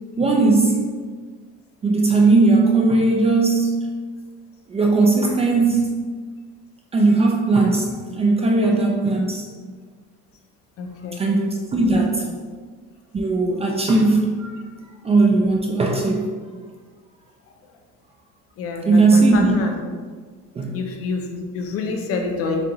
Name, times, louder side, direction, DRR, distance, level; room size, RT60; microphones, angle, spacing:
voice 1, 0.2-0.8 1.8-3.9 4.7-5.9 6.9-9.5 11.2-12.2 13.1-14.5 15.0-16.3 18.9-19.5 20.6-20.8, right 3 dB, 20° right, 0 dB, 0.3 m, -18 dB
voice 2, 10.8-11.2 11.9-12.1 18.6-19.7 20.7-22.6, left 4 dB, 45° left, 4 dB, 0.6 m, -27 dB
7.4 x 2.5 x 2.9 m, 1.5 s
cardioid pair, 150°, 31 cm